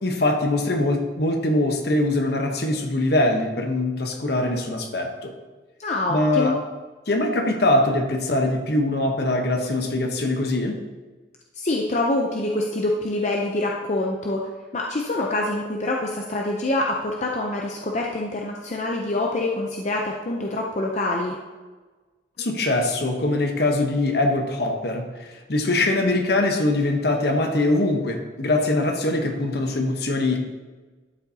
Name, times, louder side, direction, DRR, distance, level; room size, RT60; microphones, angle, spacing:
voice 1, 0.0-5.3 6.1-6.6 7.1-10.8 22.4-30.4, left 2 dB, 60° left, 4 dB, 1.1 m, -22 dB
voice 2, 5.8-6.6 11.6-14.4 14.7-21.4, left 2 dB, 40° left, -1 dB, 0.7 m, -25 dB
12.0 x 7.1 x 2.8 m, 1.3 s
head